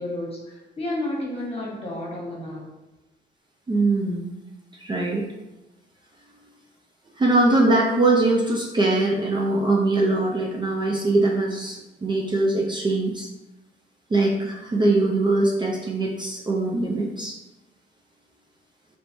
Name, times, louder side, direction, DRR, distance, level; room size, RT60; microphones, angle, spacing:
voice 1, 0.0-2.7, left 1 dB, 30° left, -3 dB, 1.2 m, -31 dB
voice 2, 3.7-4.3 4.7-5.2 7.2-13.3 14.1-17.4, right 2 dB, 25° right, -2 dB, 0.4 m, -22 dB
3.2 x 3.0 x 2.6 m, 1.0 s
cardioid pair, 90°, 20 cm